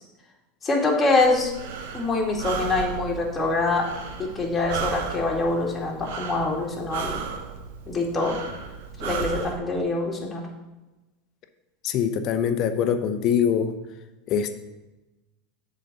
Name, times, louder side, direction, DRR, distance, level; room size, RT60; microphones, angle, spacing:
voice 1, 0.6-1.5 1.9-3.9 4.2-7.2 7.9-8.4 9.0-10.4, left 3 dB, 20° left, -2 dB, 2.2 m, -24 dB
Breathing, 1.2-9.6, right 6 dB, 70° right, 0.9 m, -35 dB
voice 2, 11.8-13.7 14.3-14.5, left 8 dB, 50° left, 9 dB, 0.8 m, -23 dB
7.5 x 4.2 x 6.8 m, 1.1 s
hypercardioid pair, 95°, 0 cm